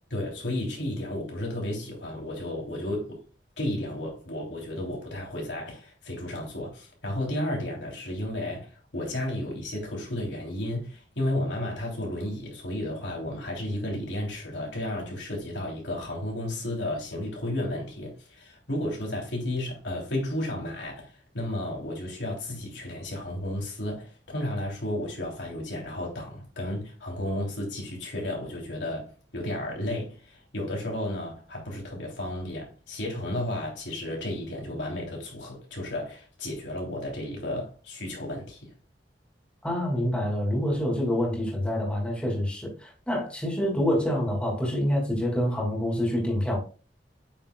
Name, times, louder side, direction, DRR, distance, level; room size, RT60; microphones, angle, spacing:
voice 1, 0.1-3.2 3.6-38.7, left 1 dB, 85° left, 3.3 m, -33 dB
voice 2, 39.6-46.6, equal, 5° left, 2.7 m, -27 dB
8.4 x 6.5 x 2.3 m
head